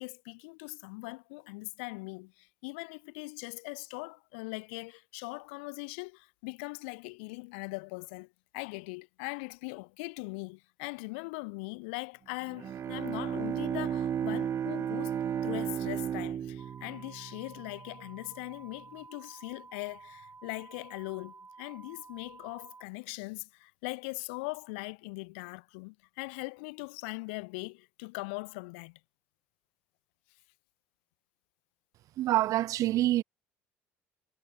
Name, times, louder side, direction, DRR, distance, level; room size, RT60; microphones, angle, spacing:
voice 1, 0.0-15.2 15.4-29.0, left 29 dB, 85° left, 1.4 m, -41 dB
Bowed string instrument, 12.4-18.1, right 9 dB, 50° right, 0.9 m, -34 dB
sound 1, 16.6-22.8, right 4 dB, 30° right, 7.7 m, -52 dB
voice 2, 32.2-33.2, right 14 dB, 65° right, 1.7 m, -26 dB
supercardioid pair, 75°, 6 cm